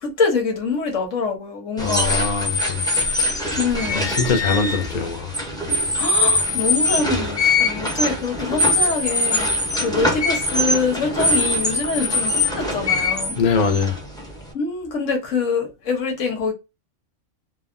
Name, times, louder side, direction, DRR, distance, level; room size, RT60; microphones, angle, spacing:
voice 1, 0.0-2.2 3.6-4.2 6.0-9.4 9.8-13.4 14.5-16.5, left 4 dB, 85° left, 1.4 m, -24 dB
voice 2, 1.8-2.8 3.9-5.4 13.4-14.0, left 5 dB, 45° left, 0.7 m, -22 dB
sound 1, 1.8-14.5, left 2 dB, 5° left, 0.5 m, -22 dB
3.4 x 2.1 x 2.5 m
omnidirectional pair, 1.3 m